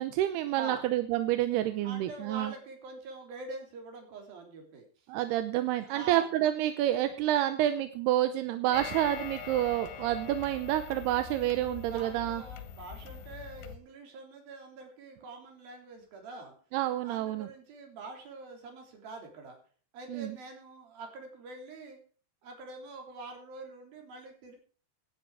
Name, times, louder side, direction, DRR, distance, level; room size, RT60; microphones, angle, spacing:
voice 1, 0.0-2.5 5.1-12.4 16.7-17.5 20.1-20.4, right 13 dB, 75° right, 10 dB, 2.6 m, -29 dB
voice 2, 0.5-0.9 1.8-5.1 5.5-6.3 11.9-16.5 17.0-19.6 19.9-22.0 22.4-24.6, right 3 dB, 55° right, 3 dB, 4.9 m, -45 dB
sound 1, 8.7-13.8, left 8 dB, 85° left, 3.7 m, -43 dB
17.5 x 10.0 x 4.8 m, 0.41 s
omnidirectional pair, 5.2 m